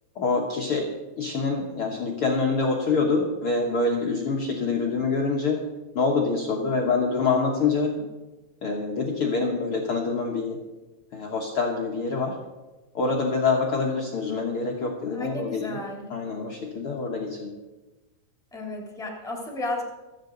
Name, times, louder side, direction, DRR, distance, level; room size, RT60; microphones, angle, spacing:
voice 1, 0.1-0.9 1.2-5.6 5.9-7.9 8.6-10.6 11.1-12.3 12.9-15.8 16.1-17.5, left 4 dB, 80° left, -1 dB, 1.2 m, -25 dB
voice 2, 15.1-16.1 18.5-19.9, left 2 dB, ahead, -1 dB, 2.3 m, -33 dB
25.0 x 9.1 x 3.9 m, 1.1 s
omnidirectional pair, 4.6 m